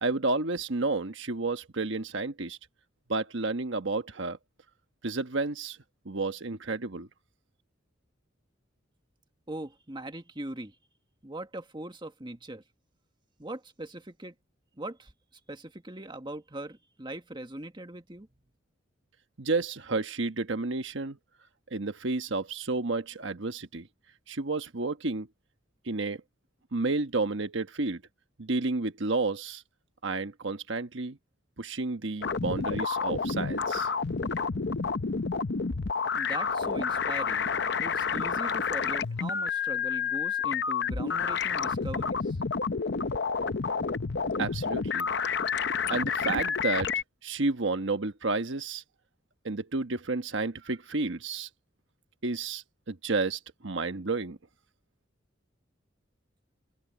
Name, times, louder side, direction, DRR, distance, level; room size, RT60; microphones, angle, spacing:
voice 1, 0.0-2.6 3.1-4.4 5.0-5.8 6.0-7.1 19.4-21.2 21.7-23.9 24.3-25.3 25.8-26.2 26.7-28.0 28.4-29.6 30.0-31.2 31.6-33.9 44.4-45.1 45.9-46.9 47.2-48.8 49.4-51.5 52.2-54.4, right 3 dB, 70° right, 1.2 m, -31 dB
voice 2, 9.5-10.7 11.2-12.6 13.4-14.3 14.8-15.1 15.5-18.3 36.1-37.5 37.8-42.4, right 1 dB, 25° right, 1.6 m, -40 dB
sound 1, 32.2-47.0, left 5 dB, 60° left, 0.7 m, -29 dB
open air
head